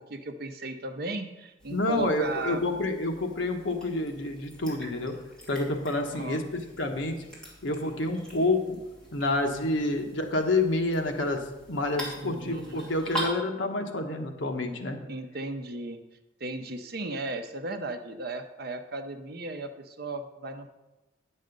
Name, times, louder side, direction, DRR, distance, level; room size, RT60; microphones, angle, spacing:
voice 1, 0.0-2.6 6.1-6.4 12.1-12.9 15.1-16.0 16.4-20.7, right 2 dB, 50° right, 7 dB, 0.7 m, -36 dB
sound 1, 1.6-13.3, right 1 dB, 5° left, 2.6 m, -43 dB
voice 2, 1.7-5.2 5.5-7.1 7.6-8.8 9.1-15.0, left 2 dB, 70° left, 3 dB, 1.2 m, -28 dB
9.8 x 6.5 x 5.2 m, 1.0 s
head